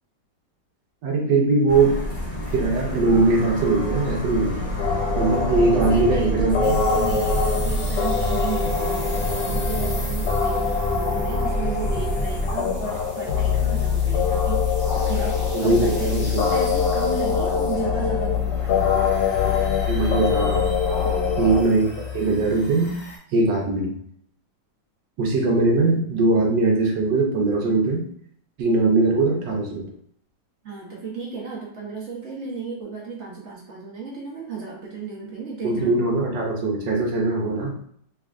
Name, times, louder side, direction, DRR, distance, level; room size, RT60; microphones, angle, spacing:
voice 1, 1.0-2.0 2.5-4.7 5.1-6.8 15.5-16.4 19.9-20.7 21.4-22.9 23.3-24.0 25.2-28.1 28.6-29.9 35.6-37.7, right 3 dB, 75° right, 0 dB, 1.4 m, -21 dB
sound 1, 1.7-12.5, equal, 25° left, 0.9 m, -31 dB
sound 2, 4.8-21.6, left 5 dB, 70° left, 1.2 m, -23 dB
voice 2, 5.5-16.1 16.5-19.1 21.0-21.4 30.6-35.9, right 5 dB, 45° right, -3 dB, 1.0 m, -34 dB
sound 3, 6.6-23.2, left 2 dB, 50° left, 1.4 m, -40 dB
3.4 x 3.3 x 2.4 m, 0.64 s
omnidirectional pair, 2.0 m